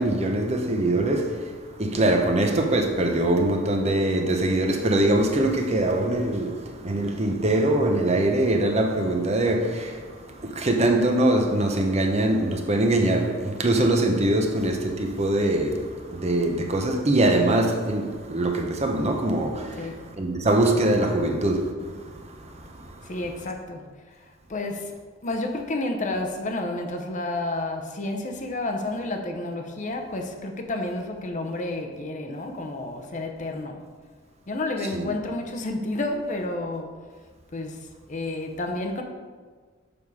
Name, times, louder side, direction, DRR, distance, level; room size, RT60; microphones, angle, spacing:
voice 1, 0.0-23.1 34.9-35.1, right 1 dB, 35° right, 0.8 m, -23 dB
voice 2, 19.8-20.1 23.0-24.9 25.2-33.9 34.5-37.1 37.5-39.0, left 2 dB, 40° left, 0.7 m, -30 dB
6.9 x 5.6 x 4.7 m
head